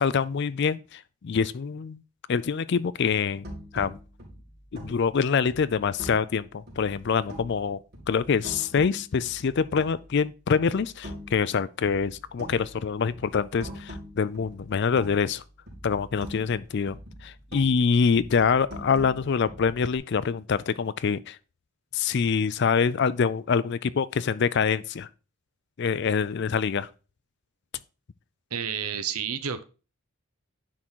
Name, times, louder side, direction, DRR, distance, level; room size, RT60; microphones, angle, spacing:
voice 1, 0.0-2.0 2.3-3.5 3.7-4.0 4.7-7.8 8.1-15.4 15.8-17.0 17.2-21.4 21.9-25.1 25.8-26.9, left 6 dB, 50° left, 0.4 m, -25 dB
sound 1, 3.4-6.4 6.7-7.7 7.9-10.2 10.5-11.5 11.8-15.4 15.7-17.8 18.1-20.0, equal, 45° right, 3.2 m, -43 dB
voice 2, 28.5-29.6, right 7 dB, 85° right, 0.8 m, -30 dB
10.0 x 3.8 x 4.5 m
head